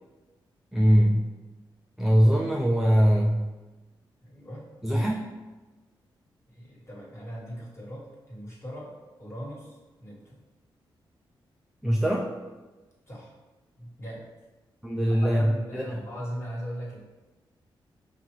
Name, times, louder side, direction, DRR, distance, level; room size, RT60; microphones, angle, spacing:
voice 1, 0.7-1.3 2.0-3.5 4.8-5.2 11.8-12.3 14.8-16.0, equal, 5° right, -3 dB, 0.3 m, -22 dB
voice 2, 4.2-4.6 6.5-8.9 9.2-10.4 13.1-13.3 13.8-14.3 15.1-17.0, equal, 30° left, -5 dB, 1.3 m, -39 dB
5.6 x 2.4 x 3.0 m, 1.2 s
cardioid pair, 100°, 9 cm